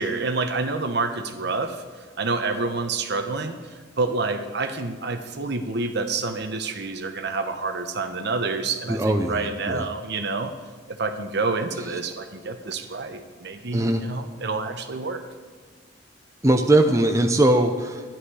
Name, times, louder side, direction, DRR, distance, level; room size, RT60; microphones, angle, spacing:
voice 1, 0.0-1.8 2.2-3.5 4.0-10.5 11.0-15.2, right 3 dB, 60° right, 7 dB, 1.1 m, -28 dB
voice 2, 8.9-9.9 13.7-14.0 16.4-18.0, right 1 dB, 15° right, 4 dB, 0.6 m, -20 dB
14.0 x 11.0 x 4.9 m, 1.5 s
head